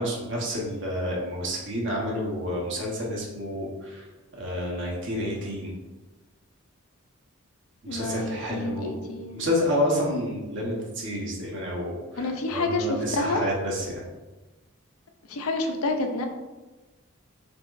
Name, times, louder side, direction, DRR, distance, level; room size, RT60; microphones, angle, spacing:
voice 1, 0.0-4.1 4.4-5.7 7.8-8.9 9.3-14.0, left 1 dB, 55° right, -3 dB, 1.2 m, -29 dB
voice 2, 7.9-9.5 12.2-13.4 15.3-16.3, left 2 dB, 90° left, 4 dB, 0.6 m, -29 dB
6.0 x 3.0 x 2.5 m, 1.2 s
head